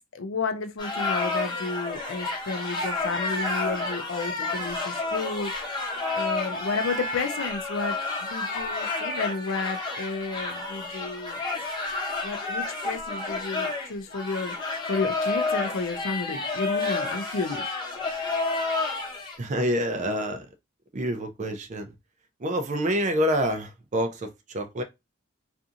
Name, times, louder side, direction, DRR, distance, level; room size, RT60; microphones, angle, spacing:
voice 1, 0.1-5.6 6.1-11.4 12.2-17.8 18.2-18.3, left 4 dB, 65° left, 0.5 m, -32 dB
sound 1, 0.8-19.4, left 3 dB, 20° left, 0.9 m, -30 dB
voice 2, 19.4-20.5 20.9-21.8 22.4-24.8, equal, 35° right, 0.5 m, -27 dB
2.7 x 2.5 x 2.4 m
head